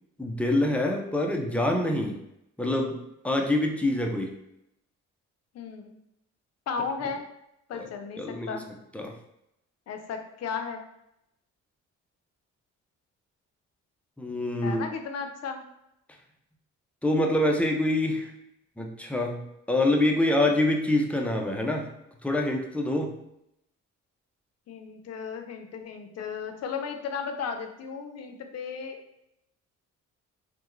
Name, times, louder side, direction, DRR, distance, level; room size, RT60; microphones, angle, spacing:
voice 1, 0.2-2.2 2.6-3.0 3.2-4.4 7.7-7.9 8.2-8.6 8.9-9.2 14.2-14.8 17.0-18.3 18.8-21.9 22.2-23.2, left 1 dB, 5° left, 2 dB, 0.5 m, -26 dB
voice 2, 5.5-6.0 6.7-7.3 7.7-8.6 9.9-10.8 14.6-15.6 24.7-29.0, left 6 dB, 60° left, 5 dB, 0.6 m, -35 dB
3.5 x 2.1 x 3.1 m, 0.81 s
cardioid pair, 90°, 30 cm